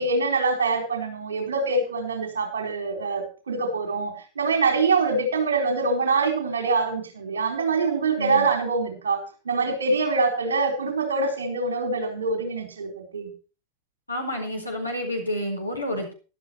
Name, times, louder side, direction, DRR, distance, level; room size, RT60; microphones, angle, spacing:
voice 1, 0.0-13.3, right 3 dB, 70° right, 5 dB, 4.0 m, -25 dB
voice 2, 8.2-8.5 14.1-16.1, equal, 85° left, 2 dB, 4.6 m, -29 dB
13.0 x 12.5 x 4.5 m, 0.35 s
figure-of-eight pair, 90°, 0 cm